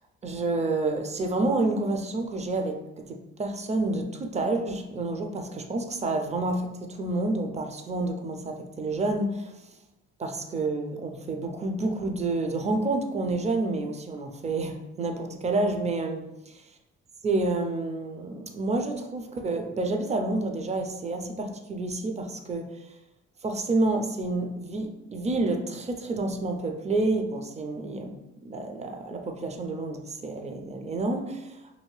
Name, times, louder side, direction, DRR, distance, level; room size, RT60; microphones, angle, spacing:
voice 1, 0.2-9.5 10.2-16.3 17.2-22.9 23.4-31.8, right 2 dB, 25° right, 5 dB, 0.4 m, -29 dB
2.8 x 2.7 x 3.1 m, 0.95 s
cardioid pair, 90°, 30 cm